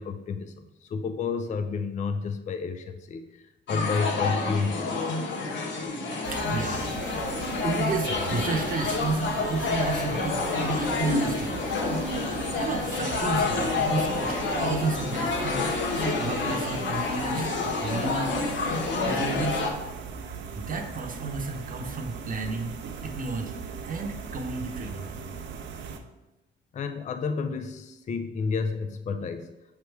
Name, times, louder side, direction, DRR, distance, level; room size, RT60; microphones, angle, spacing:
voice 1, 0.0-5.0 26.7-29.5, left 5 dB, 40° left, 8 dB, 0.4 m, -31 dB
sound 1, 3.7-19.7, left 3 dB, 65° left, 1.0 m, -28 dB
sound 2, 6.2-26.0, right 5 dB, 70° right, 0.7 m, -39 dB
voice 2, 6.3-6.8 7.6-11.6 12.6-18.3 19.0-19.7 20.2-22.8 23.0-25.1, right 3 dB, 45° right, 3 dB, 0.8 m, -32 dB
6.7 x 3.3 x 4.6 m, 0.97 s
cardioid pair, 90°, 20 cm